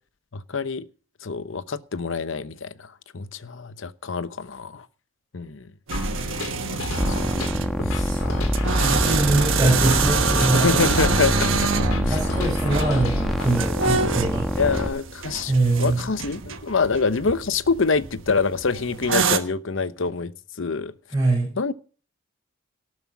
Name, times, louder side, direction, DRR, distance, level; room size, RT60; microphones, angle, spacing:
voice 1, 0.3-0.9 1.2-2.7 3.1-4.8 5.3-5.6 6.7-6.8 7.1-7.2 7.9-8.1 10.5-11.7 12.1-12.5 14.6-15.5 15.8-20.9 21.6-21.7, left 4 dB, 65° left, 0.8 m, -26 dB
sound 1, 5.9-13.9, left 1 dB, 85° left, 3.3 m, -30 dB
sound 2, 5.9-19.4, right 5 dB, 65° right, 1.3 m, -27 dB
sound 3, 7.0-14.9, equal, ahead, 1.2 m, -26 dB
voice 2, 8.8-10.7 12.1-14.5 15.5-16.0 21.1-21.5, right 2 dB, 20° right, 5.4 m, -23 dB
18.5 x 7.7 x 6.0 m
head